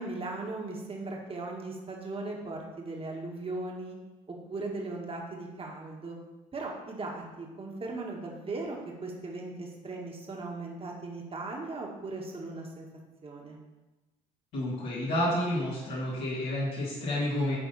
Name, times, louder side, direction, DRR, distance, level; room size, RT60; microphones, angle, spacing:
voice 1, 0.0-4.0 4.3-6.2 6.5-12.9 13.2-13.6, right 2 dB, 30° right, 0 dB, 1.9 m, -38 dB
voice 2, 14.5-17.6, left 1 dB, 70° left, -10 dB, 2.8 m, -30 dB
10.5 x 4.0 x 4.2 m, 1.1 s
supercardioid pair, 75°, 18 cm